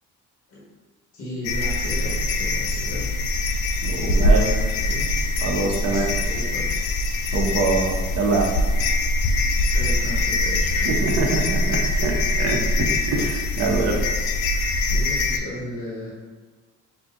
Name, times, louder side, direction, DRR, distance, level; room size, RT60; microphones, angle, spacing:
voice 1, 1.1-3.1 4.0-5.0 5.8-6.6 9.7-11.0 14.8-16.1, left 1 dB, 50° left, -8 dB, 1.5 m, -34 dB
sound 1, 1.4-15.4, left 2 dB, 75° left, 0.5 m, -23 dB
voice 2, 3.8-4.4 5.4-6.1 7.3-8.6 10.8-14.0, right 3 dB, 60° right, 0 dB, 0.8 m, -24 dB
4.8 x 2.7 x 2.5 m, 1.4 s
cardioid pair, 90°, 30 cm